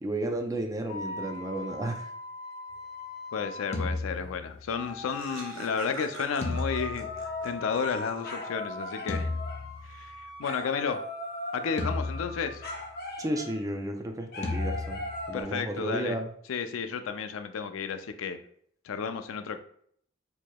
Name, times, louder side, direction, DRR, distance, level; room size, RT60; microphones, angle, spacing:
voice 1, 0.0-2.0 13.2-15.0 15.3-16.3, right 1 dB, 15° right, 4 dB, 0.4 m, -32 dB
sound 1, 0.9-4.0 4.7-13.7 14.3-15.4, left 2 dB, 55° left, 0.9 m, -39 dB
voice 2, 3.3-7.1 7.4-9.3 9.9-11.0 11.5-12.6 15.3-18.4 18.8-19.6, left 6 dB, 90° left, 9 dB, 0.4 m, -32 dB
sound 2, 3.7-4.9 6.4-7.9 9.1-10.3 11.8-13.0 14.4-15.6, left 2 dB, 35° left, 0.5 m, -35 dB
Laughter, 4.5-4.6 4.8-8.5, right 3 dB, 75° right, 0.6 m, -45 dB
4.6 x 2.8 x 2.2 m, 0.64 s
head